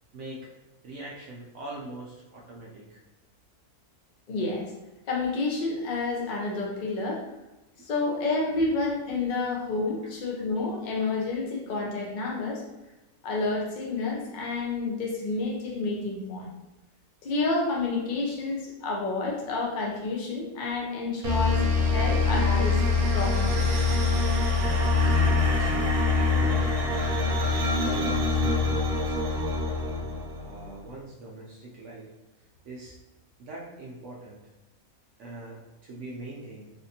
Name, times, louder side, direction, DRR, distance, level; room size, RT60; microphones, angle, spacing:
voice 1, 0.1-0.5 0.8-3.0 8.6-8.7 10.0-10.1 25.0-26.7 27.1-29.2 29.6-32.1 32.7-33.0 33.4-34.4 35.2-36.7, right 2 dB, 65° right, -4 dB, 0.8 m, -42 dB
voice 2, 4.3-4.7 5.1-7.2 7.9-12.6 13.2-16.5 17.2-22.8 23.1-23.6, left 3 dB, 50° left, -2 dB, 0.6 m, -29 dB
sound 1, 21.2-30.7, left 3 dB, 85° right, 1.1 m, -24 dB
3.5 x 2.6 x 2.7 m, 1.0 s
omnidirectional pair, 1.6 m